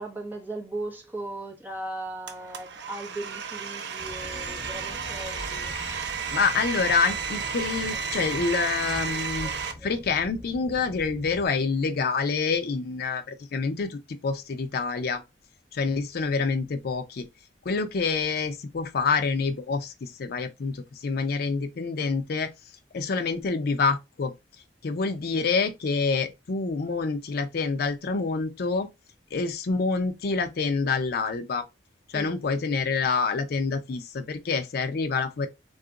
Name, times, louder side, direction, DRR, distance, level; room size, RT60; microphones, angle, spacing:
voice 1, 0.0-5.7 32.1-32.4, right 2 dB, 10° right, 0.9 m, -37 dB
Domestic sounds home sounds, 2.3-9.7, right 6 dB, 70° right, 0.6 m, -33 dB
sound 1, 4.0-11.5, left 1 dB, 25° right, 1.8 m, -43 dB
voice 2, 6.3-9.5 9.8-15.2 15.7-17.3 17.7-22.5 22.9-24.3 24.8-28.9 29.3-31.7 32.1-35.5, left 4 dB, 60° left, 0.4 m, -27 dB
2.8 x 2.4 x 3.6 m
head